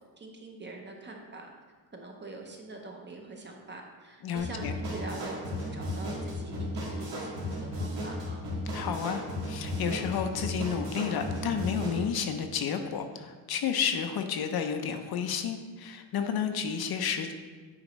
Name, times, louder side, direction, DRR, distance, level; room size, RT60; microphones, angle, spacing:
voice 1, 0.2-1.5 1.9-8.4, right 2 dB, 25° right, 1 dB, 0.7 m, -44 dB
voice 2, 4.2-4.7 8.7-17.3, left 7 dB, 55° left, 7 dB, 0.6 m, -31 dB
sound 1, 4.4-12.0, left 1 dB, 70° right, 1.9 m, -35 dB
8.7 x 4.9 x 3.1 m, 1.4 s
wide cardioid pair, 175°, 45 cm